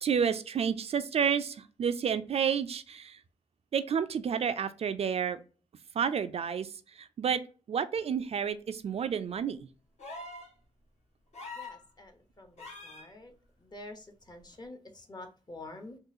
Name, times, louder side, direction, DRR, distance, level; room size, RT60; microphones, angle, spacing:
voice 1, 0.0-3.2 3.7-5.4 6.0-6.7 7.0-7.4 7.7-9.7, right 7 dB, 55° right, 10 dB, 0.3 m, -30 dB
sound 1, 10.0-10.5 11.3-11.8 12.6-13.1 14.5-14.6, left 2 dB, 70° left, 1.3 m, -43 dB
voice 2, 11.6-12.1 12.4-12.5 12.8-13.3 13.6-16.0, left 2 dB, 35° left, 6 dB, 0.8 m, -47 dB
3.8 x 2.4 x 2.6 m, 0.37 s
cardioid pair, 75°, 12 cm